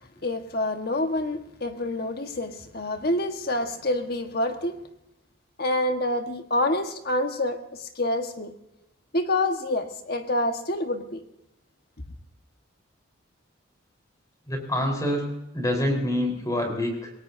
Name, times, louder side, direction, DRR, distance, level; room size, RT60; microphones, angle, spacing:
voice 1, 0.2-4.8 5.6-8.5 9.1-11.2, left 1 dB, 50° left, 5 dB, 1.5 m, -27 dB
voice 2, 14.5-17.1, left 1 dB, 20° left, 2 dB, 4.3 m, -26 dB
27.5 x 17.5 x 2.7 m, 0.84 s
head